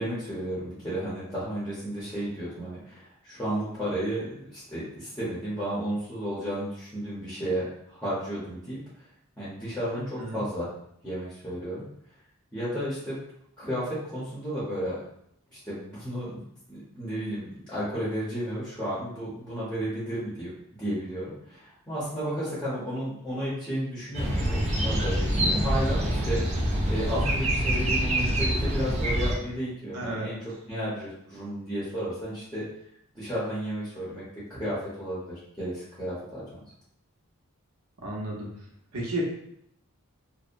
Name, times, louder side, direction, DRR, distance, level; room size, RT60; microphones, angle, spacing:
voice 1, 0.0-8.8 9.4-10.7 11.0-11.8 12.5-13.1 13.6-15.0 15.5-16.4 16.7-26.5 26.9-30.4 30.7-32.6 33.1-34.2 34.5-36.4, equal, 5° left, -10 dB, 0.7 m, -33 dB
sound 1, 24.1-29.4, right 1 dB, 30° right, 0.3 m, -26 dB
voice 2, 29.9-30.3 38.0-38.5 38.9-39.3, right 1 dB, 80° right, -2 dB, 0.7 m, -31 dB
2.7 x 2.0 x 2.5 m, 0.73 s
head